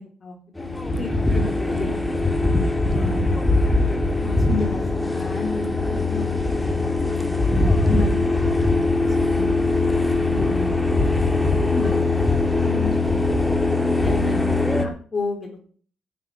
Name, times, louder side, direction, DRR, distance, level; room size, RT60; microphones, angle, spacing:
voice 1, 0.0-2.2 2.9-3.7 4.2-8.2 8.6-9.7 10.3-11.1 11.4-13.2 13.8-15.7, left 3 dB, 30° left, 1 dB, 4.1 m, -33 dB
sound 1, 0.6-14.9, left 2 dB, 10° left, 2.4 m, -21 dB
10.5 x 7.6 x 9.4 m, 0.43 s
cardioid pair, 90°, 0 cm